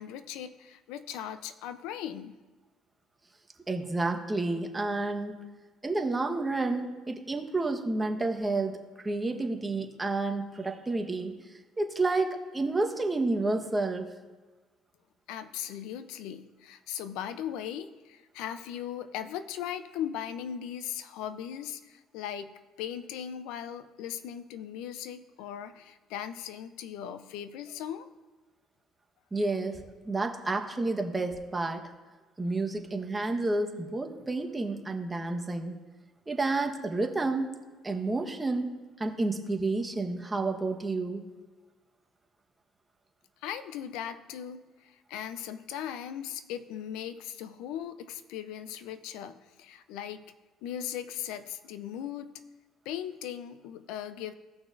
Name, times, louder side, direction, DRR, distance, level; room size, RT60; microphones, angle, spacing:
voice 1, 0.0-2.3 15.3-22.5 22.8-28.1 43.4-50.2 50.6-52.3 52.9-54.3, left 9 dB, 85° left, 12 dB, 0.5 m, -38 dB
voice 2, 3.7-5.4 5.8-14.1 29.3-31.9 32.4-35.8 36.3-37.5 37.8-41.2, right 2 dB, 20° right, 3 dB, 1.2 m, -30 dB
17.0 x 6.0 x 2.6 m, 1.3 s
supercardioid pair, 90°, 0 cm